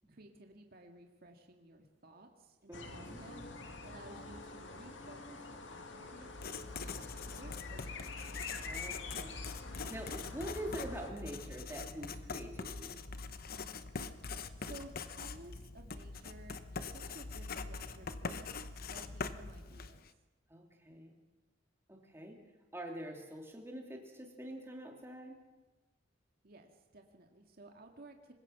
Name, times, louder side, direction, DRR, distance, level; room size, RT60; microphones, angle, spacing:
voice 1, 0.1-3.5 3.8-8.1 10.6-10.7 14.6-20.0 26.4-28.3, right 2 dB, 55° right, 3 dB, 2.0 m, -56 dB
sound 1, 2.7-11.1, left 3 dB, 80° left, 2.3 m, -47 dB
voice 2, 2.7-3.2 8.6-13.0 20.5-21.1 21.9-22.4 22.7-25.4, right 1 dB, 15° right, 1 dB, 3.3 m, -45 dB
Writing, 6.3-20.1, left 4 dB, 55° left, 0.9 m, -43 dB
sound 2, 7.0-15.2, right 1 dB, 75° right, 4.8 m, -68 dB
24.0 x 20.5 x 6.0 m, 1.2 s
head